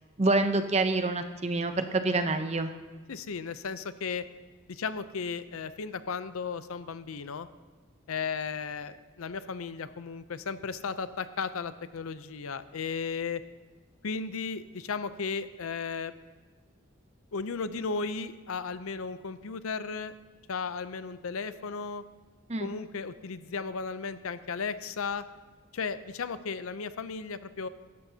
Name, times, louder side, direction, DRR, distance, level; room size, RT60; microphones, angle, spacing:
voice 1, 0.2-2.7 22.5-22.7, right 2 dB, 30° right, 8 dB, 0.6 m, -27 dB
voice 2, 3.1-4.3 4.7-7.5 8.1-13.4 14.0-16.1 17.3-20.1 20.5-22.0 22.6-25.2 25.7-27.7, left 5 dB, 85° left, 13 dB, 0.6 m, -35 dB
17.0 x 13.0 x 2.8 m, 1.4 s
head